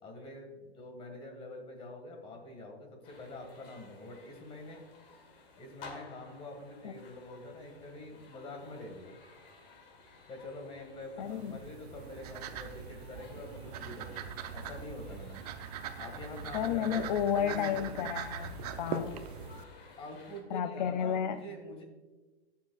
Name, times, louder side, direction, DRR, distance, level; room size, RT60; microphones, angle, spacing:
voice 1, 0.0-4.8 5.6-9.1 10.3-14.2 14.5-15.4 16.0-18.0 20.0-21.8, left 2 dB, 15° left, 3 dB, 1.7 m, -45 dB
sound 1, 3.0-20.4, left 3 dB, 60° left, 2.7 m, -55 dB
voice 2, 11.2-11.6 16.5-19.2 20.5-21.4, left 9 dB, 45° left, 10 dB, 0.4 m, -32 dB
sound 2, 11.2-19.6, right 7 dB, 40° right, 0.7 m, -42 dB
19.5 x 7.3 x 2.3 m, 1.3 s
hypercardioid pair, 155°, 32 cm